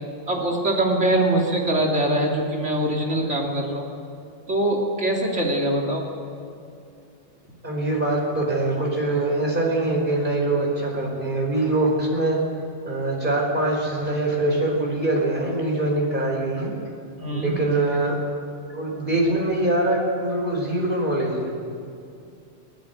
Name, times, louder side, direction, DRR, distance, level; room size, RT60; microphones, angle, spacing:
voice 1, 0.3-3.9 4.5-6.0 17.2-17.5, right 1 dB, 70° right, -1 dB, 3.6 m, -23 dB
voice 2, 7.6-12.4 12.8-16.7 17.3-18.1 18.7-21.5, right 2 dB, 40° right, -1 dB, 5.0 m, -23 dB
29.0 x 10.5 x 9.3 m, 2.5 s
omnidirectional pair, 1.3 m